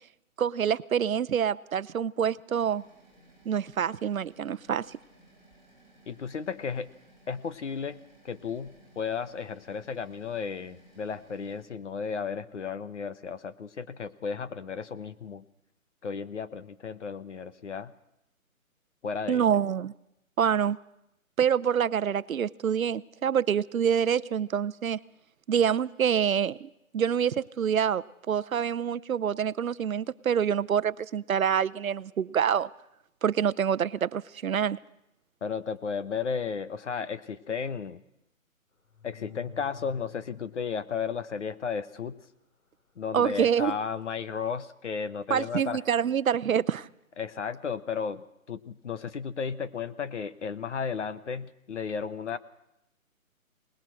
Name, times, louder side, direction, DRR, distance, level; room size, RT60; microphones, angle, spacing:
voice 1, 0.4-2.8 3.5-5.0 19.3-19.9 20.4-20.8 21.4-25.0 25.5-32.7 33.2-34.8 43.1-43.8 45.3-46.9, right 8 dB, 70° right, 0.8 m, -26 dB
sound 1, 2.6-11.7, right 1 dB, 15° left, 4.8 m, -58 dB
voice 2, 6.1-6.9 7.3-8.0 8.2-15.4 16.0-17.9 19.0-19.4 35.4-38.0 39.0-42.2 43.0-45.8 47.2-52.4, left 6 dB, 55° left, 1.2 m, -34 dB
sound 2, 38.9-40.9 43.5-43.7, left 8 dB, 70° left, 3.2 m, -49 dB
21.5 x 20.0 x 6.3 m
hypercardioid pair, 170°, 42 cm